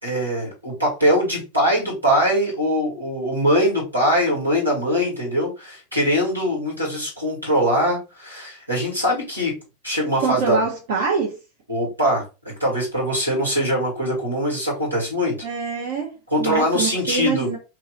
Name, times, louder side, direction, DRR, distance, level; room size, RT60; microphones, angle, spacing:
voice 1, 0.0-9.5 9.8-10.6 11.7-12.2 12.6-15.4 16.3-17.5, equal, 85° right, 2.0 m, -22 dB
voice 2, 10.2-11.4 15.4-17.6, right 5 dB, 60° right, 1.0 m, -25 dB
3.0 x 2.8 x 4.1 m
figure-of-eight pair, 85°, 0 cm